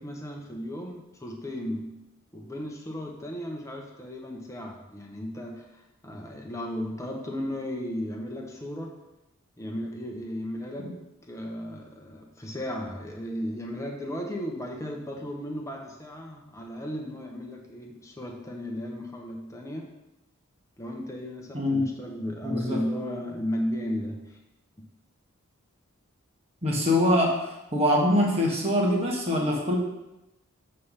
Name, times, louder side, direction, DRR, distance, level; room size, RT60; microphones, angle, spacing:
voice 1, 0.0-2.0 2.3-9.0 9.6-20.0 20.8-24.4 24.8-24.9, equal, 15° left, 1 dB, 0.9 m, -35 dB
voice 2, 21.5-21.9 22.4-22.8 26.6-27.3 27.7-29.8, left 1 dB, 30° right, -2 dB, 1.4 m, -23 dB
7.6 x 3.3 x 5.7 m, 0.94 s
head